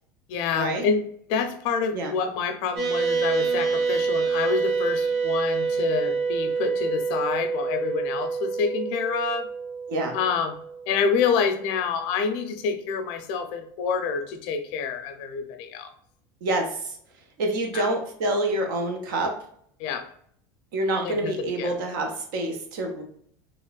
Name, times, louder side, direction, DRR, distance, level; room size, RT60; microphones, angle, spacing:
voice 1, 0.3-1.0 1.3-9.5 10.1-10.6 10.9-15.9 17.7-17.9 19.8-20.1 21.0-21.7, left 6 dB, 65° left, 6 dB, 0.5 m, -27 dB
sound 1, 2.8-11.4, right 5 dB, 40° right, 0.9 m, -27 dB
voice 2, 16.4-17.0 17.4-19.3 20.7-23.0, right 1 dB, 85° right, 3 dB, 0.7 m, -27 dB
2.9 x 2.1 x 2.3 m, 0.64 s
supercardioid pair, 135°, 11 cm